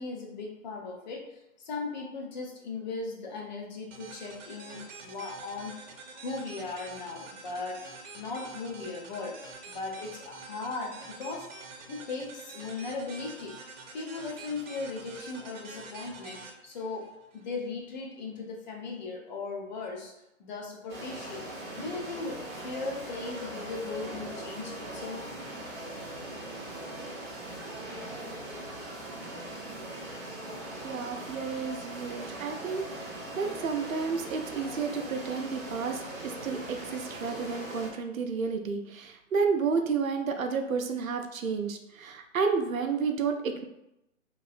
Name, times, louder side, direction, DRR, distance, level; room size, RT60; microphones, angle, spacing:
voice 1, 0.0-5.7 6.1-7.8 8.1-9.4 9.7-11.5 11.9-13.6 13.9-20.1 20.4-21.5 21.8-22.4 22.6-25.2, left 3 dB, 35° left, -1 dB, 0.6 m, -38 dB
sound 1, 3.9-17.6, right 3 dB, 60° right, 0.9 m, -47 dB
sound 2, 20.9-37.9, right 1 dB, 20° right, 0.6 m, -40 dB
voice 2, 30.8-33.1 33.4-43.7, right 5 dB, 80° right, 5 dB, 0.6 m, -31 dB
3.0 x 2.7 x 2.4 m, 0.85 s
hypercardioid pair, 140°, 40 cm